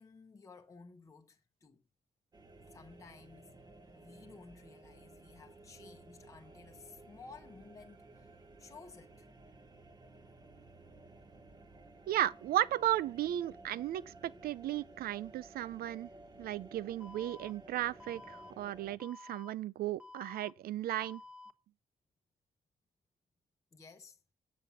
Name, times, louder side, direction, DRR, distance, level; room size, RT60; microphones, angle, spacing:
voice 1, 0.0-1.8 2.7-3.5 3.9-8.3 8.6-9.3 23.7-24.2, left 4 dB, 20° left, 0.9 m, -55 dB
sound 1, 2.3-19.0, right 2 dB, 25° right, 1.3 m, -56 dB
voice 2, 12.1-16.1 16.4-21.2, right 13 dB, 85° right, 0.5 m, -35 dB
Alarm, 17.0-17.5 18.0-18.5 19.0-19.5 20.0-20.5 21.0-21.5, left 3 dB, 5° right, 1.0 m, -52 dB
9.2 x 8.3 x 7.0 m
wide cardioid pair, 160°, 15 cm